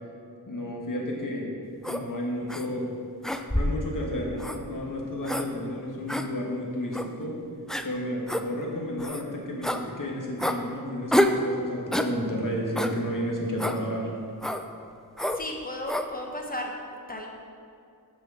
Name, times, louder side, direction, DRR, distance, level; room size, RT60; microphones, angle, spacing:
voice 1, 0.5-1.6 1.8-2.9 3.5-7.4 7.8-14.1, equal, 55° left, -1 dB, 1.6 m, -32 dB
sound 1, 1.8-2.0 2.5-2.7 3.2-3.8 4.4-4.6 5.2-5.5 6.1-6.3 6.9-7.1 7.7-7.9 8.3-8.4 9.0-9.2 9.6-9.8 10.4-10.6 11.1-11.4 11.9-12.1 12.8-13.0 13.6-13.8 14.4-14.6 15.2-15.4 15.9-16.1, left 1 dB, ahead, 0.3 m, -27 dB
voice 2, 15.3-16.7 17.1-17.3, left 1 dB, 20° left, 1 dB, 1.1 m, -35 dB
6.4 x 6.3 x 6.3 m, 2.4 s
wide cardioid pair, 85°, 38 cm